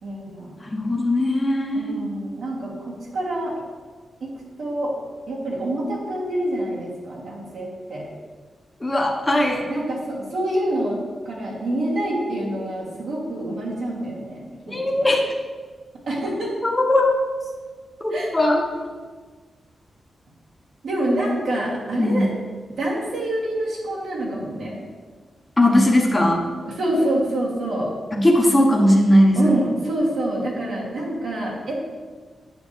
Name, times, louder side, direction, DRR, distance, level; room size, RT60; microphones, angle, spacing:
voice 1, 0.0-0.5 1.7-3.6 4.2-4.3 4.6-4.9 5.3-8.1 9.7-11.0 11.2-15.1 16.1-16.5 18.1-18.3 20.8-22.3 22.8-24.8 26.6-28.0 29.3-31.8, right 1 dB, 75° right, -5 dB, 2.9 m, -26 dB
voice 2, 0.7-2.0 8.8-9.7 14.7-15.2 16.6-17.1 18.0-18.6 22.0-22.2 25.6-26.4 28.1-29.5, left 1 dB, 15° left, -1 dB, 1.2 m, -18 dB
9.8 x 7.9 x 3.4 m, 1.5 s
wide cardioid pair, 135°, 0 cm